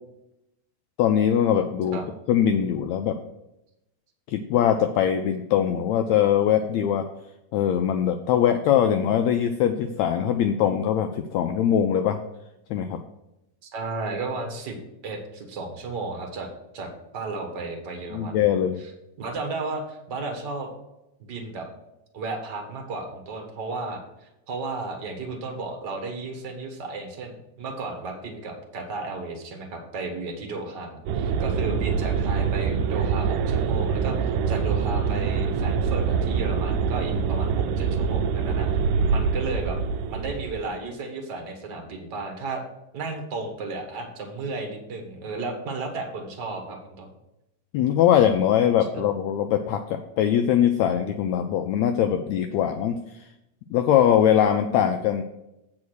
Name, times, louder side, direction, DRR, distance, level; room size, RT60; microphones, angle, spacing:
voice 1, 1.0-2.0 2.3-3.2 4.3-7.1 7.5-12.2 12.7-13.0 18.1-18.8 47.7-53.2 53.7-55.2, left 9 dB, 90° left, 6 dB, 1.6 m, -22 dB
voice 2, 13.6-14.8 15.0-16.5 16.7-18.5 19.2-20.7 21.2-21.7 22.1-38.8 39.1-39.8 40.1-42.6 42.9-47.1, right 3 dB, 50° right, 2 dB, 1.2 m, -34 dB
sound 1, 31.1-40.7, right 6 dB, 85° right, 1.6 m, -25 dB
8.5 x 4.8 x 6.3 m, 0.89 s
omnidirectional pair, 3.7 m